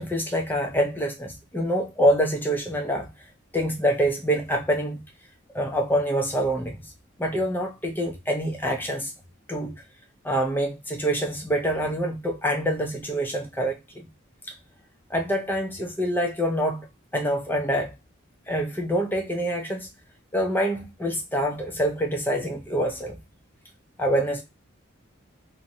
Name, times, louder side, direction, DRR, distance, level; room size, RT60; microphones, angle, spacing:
voice 1, 0.0-3.1 3.5-5.0 5.5-6.9 7.2-9.1 9.5-9.7 10.2-14.1 14.5-14.6 15.1-16.9 17.1-17.9 18.5-19.9 20.3-23.2 24.0-24.4, equal, 10° left, 0.5 m, -26 dB
2.5 x 2.1 x 2.6 m
head